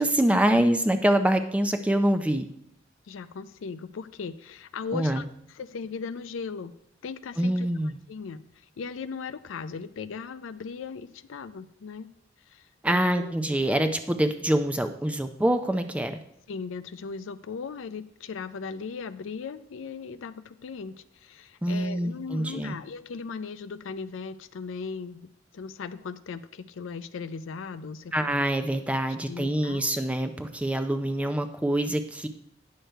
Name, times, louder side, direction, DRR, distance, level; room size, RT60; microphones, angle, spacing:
voice 1, 0.0-2.5 4.9-5.2 7.4-8.0 12.8-16.2 21.6-22.7 28.1-32.3, right 1 dB, 5° right, 8 dB, 0.4 m, -25 dB
voice 2, 3.1-6.7 7.0-7.7 8.1-12.1 12.5-13.7 16.5-25.3 25.5-28.3 29.1-29.9, left 5 dB, 90° left, 13 dB, 0.4 m, -38 dB
9.3 x 6.5 x 4.4 m, 0.72 s
head